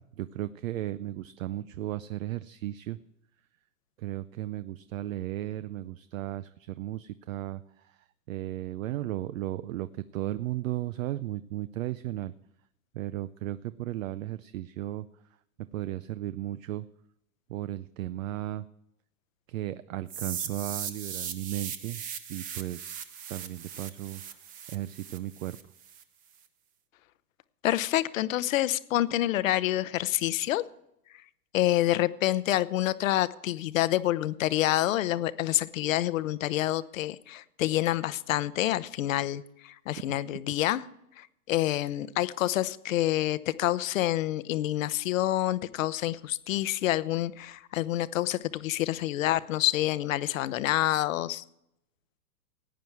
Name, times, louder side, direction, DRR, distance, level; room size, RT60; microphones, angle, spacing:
voice 1, 0.0-3.0 4.0-6.5 6.8-7.6 8.3-9.9 10.1-12.3 12.9-15.0 15.7-16.9 17.5-18.6 19.5-22.0 22.3-23.0 23.3-24.2 24.7-25.6, right 14 dB, 55° right, 15 dB, 0.6 m, -35 dB
sound 1, 20.1-26.0, right 8 dB, 15° right, 0.7 m, -39 dB
voice 2, 27.6-30.6 31.5-40.8 41.2-51.4, left 14 dB, 55° left, 17 dB, 0.8 m, -27 dB
17.5 x 9.5 x 4.7 m, 0.79 s
hypercardioid pair, 145°, 47 cm